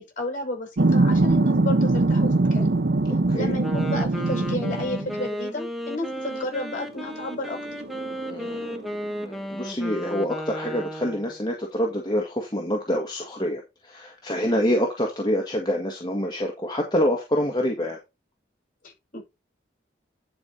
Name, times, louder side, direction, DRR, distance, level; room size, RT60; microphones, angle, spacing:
voice 1, 0.0-2.7 3.3-7.6 18.8-19.2, left 2 dB, 45° left, 6.6 m, -32 dB
sound 1, 0.8-5.2 6.5-6.7 7.0-9.1, right 2 dB, 65° right, 0.7 m, -22 dB
voice 2, 3.1-3.6 8.3-8.9 9.2-18.0, equal, 25° left, 1.8 m, -26 dB
Wind instrument woodwind instrument, 3.5-11.4, equal, ahead, 1.2 m, -34 dB
11.0 x 5.4 x 4.2 m
head